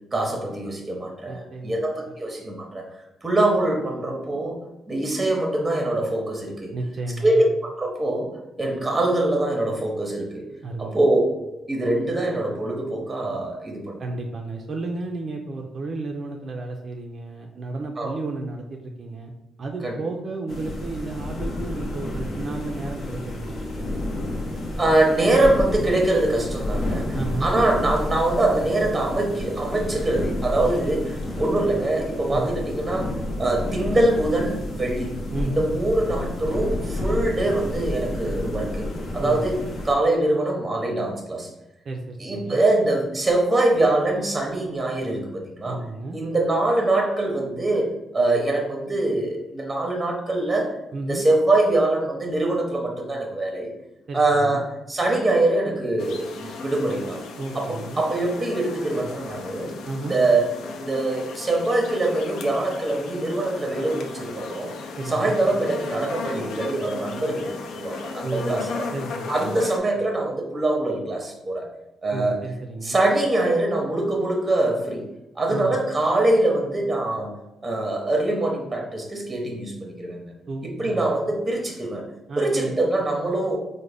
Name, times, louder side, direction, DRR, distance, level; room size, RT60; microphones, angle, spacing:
voice 1, 0.1-2.8 3.2-4.6 4.9-6.7 7.2-7.5 7.8-8.3 8.6-10.5 10.8-14.0 18.0-18.1 19.8-19.9 24.8-35.1 35.4-38.9 39.1-41.5 42.2-45.8 46.1-47.9 48.1-50.8 51.0-53.7 54.1-57.2 57.5-57.7 58.0-59.7 60.0-60.5 60.8-64.7 65.1-68.8 69.3-71.7 72.0-72.4 72.8-75.0 75.4-77.3 77.6-80.2 80.6-82.0 82.4-83.6, right 2 dB, 20° right, 0 dB, 0.7 m, -23 dB
voice 2, 1.3-1.8 2.1-2.2 6.7-7.4 10.6-11.0 14.0-19.3 19.6-23.9 27.1-27.5 32.3-32.6 35.3-35.7 39.2-39.5 41.9-42.6 45.6-46.2 50.9-51.2 54.1-54.6 57.4-58.0 59.9-60.2 65.0-65.4 68.2-68.7 68.9-69.7 72.1-73.0 75.5-75.8 80.5-81.1 82.3-82.8, right 2 dB, 50° right, 2 dB, 0.3 m, -32 dB
sound 1, 20.5-39.9, left 1 dB, 55° left, 0.7 m, -30 dB
sound 2, 56.0-69.8, left 4 dB, 80° left, 0.4 m, -36 dB
3.7 x 2.1 x 3.3 m, 0.96 s
cardioid pair, 90°, 0 cm